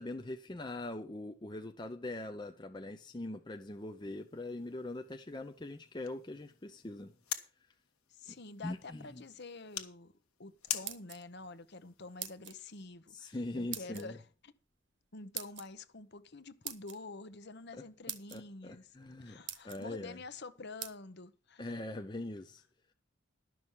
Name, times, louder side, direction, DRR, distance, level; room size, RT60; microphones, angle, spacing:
voice 1, 0.0-7.1 8.6-9.2 13.1-14.2 17.7-17.8 18.3-19.4 19.6-20.2 21.6-22.6, left 2 dB, 20° left, 0.5 m, -42 dB
sound 1, 3.5-12.9, left 11 dB, 85° left, 1.4 m, -47 dB
voice 2, 8.1-10.1 10.4-14.5 15.1-21.8, left 3 dB, 50° left, 0.9 m, -48 dB
sound 2, 10.6-11.5 12.2-12.6 13.7-14.1 15.4-15.7 16.6-17.0 17.7-17.8 18.1-18.4 19.0-19.1 19.5-19.8 20.8-21.0, right 11 dB, 55° right, 1.1 m, -42 dB
12.5 x 6.2 x 7.3 m
head